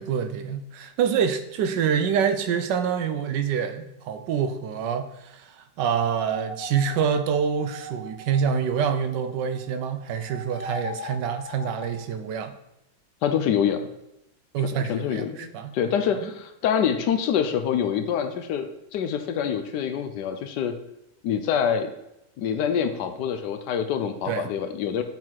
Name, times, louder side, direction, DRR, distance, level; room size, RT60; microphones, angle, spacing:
voice 1, 0.0-12.6 14.5-15.7 16.2-16.3 24.3-24.5, right 7 dB, 75° right, 9 dB, 1.2 m, -26 dB
sound 1, 5.9-9.7 10.0-12.0, equal, 50° left, 2.1 m, -39 dB
voice 2, 13.2-13.9 14.9-20.7 21.2-21.9 22.4-25.0, left 8 dB, 75° left, 9 dB, 1.1 m, -26 dB
7.4 x 3.9 x 4.5 m, 0.84 s
omnidirectional pair, 2.0 m